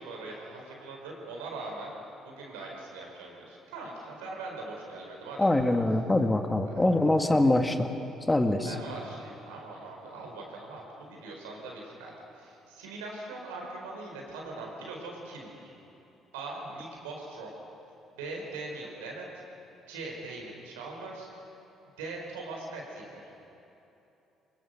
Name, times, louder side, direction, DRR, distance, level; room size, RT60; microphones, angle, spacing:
voice 1, 0.0-1.9 2.2-5.5 6.6-6.8 7.4-7.5 8.6-15.7 16.3-17.6 18.2-19.2 19.9-21.5 22.0-23.2, right 3 dB, 90° right, -1 dB, 4.7 m, -41 dB
voice 2, 5.4-7.9 8.3-8.7, left 1 dB, 15° left, 6 dB, 1.8 m, -24 dB
23.5 x 21.0 x 6.8 m, 2.9 s
hypercardioid pair, 60°, 0 cm